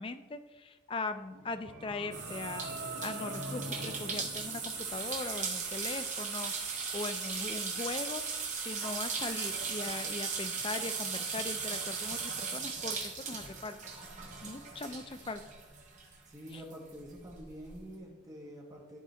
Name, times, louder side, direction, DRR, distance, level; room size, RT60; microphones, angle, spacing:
voice 1, 0.0-8.2 8.6-13.8 14.4-15.4 16.5-16.6, left 3 dB, 25° left, 10 dB, 0.3 m, -40 dB
sound 1, 1.2-5.4, right 1 dB, 85° right, 1.0 m, -43 dB
sound 2, 2.1-16.1 16.5-17.7, right 5 dB, 40° right, 1.2 m, -37 dB
voice 2, 16.3-19.0, equal, 20° right, -3 dB, 1.2 m, -47 dB
10.5 x 3.6 x 4.4 m, 1.1 s
head